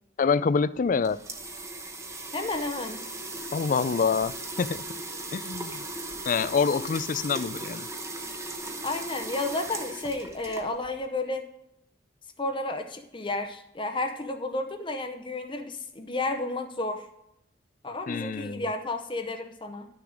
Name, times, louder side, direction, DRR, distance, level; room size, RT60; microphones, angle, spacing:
voice 1, 0.2-1.2 3.5-4.8 5.3-5.8 6.3-7.9 18.1-18.7, left 5 dB, 40° left, 17 dB, 0.3 m, -26 dB
sound 1, 0.8-11.0, right 2 dB, 15° right, 0.9 m, -38 dB
voice 2, 2.3-3.0 8.8-11.4 12.4-17.1 17.8-19.9, left 2 dB, 25° left, 6 dB, 0.7 m, -32 dB
11.5 x 6.8 x 5.0 m, 0.80 s
head